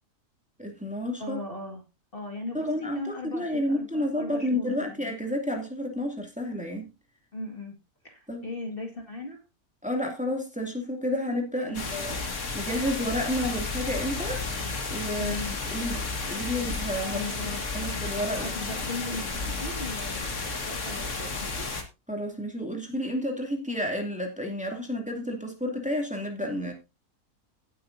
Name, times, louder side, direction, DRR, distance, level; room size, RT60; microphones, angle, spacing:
voice 1, 0.6-1.4 2.5-6.9 8.3-8.4 9.8-12.1 12.5-14.4 14.9-15.3 15.7-16.0 16.3-17.2 17.7-18.5 22.1-26.7, left 1 dB, 5° right, 2.5 m, -30 dB
voice 2, 1.2-1.8 2.1-5.0 7.3-7.7 8.0-9.4 11.7-12.2 15.2-15.6 17.0-21.7, left 2 dB, 40° left, 2.2 m, -38 dB
sound 1, 11.7-21.8, left 3 dB, 55° left, 2.2 m, -32 dB
17.0 x 8.4 x 2.7 m
omnidirectional pair, 1.6 m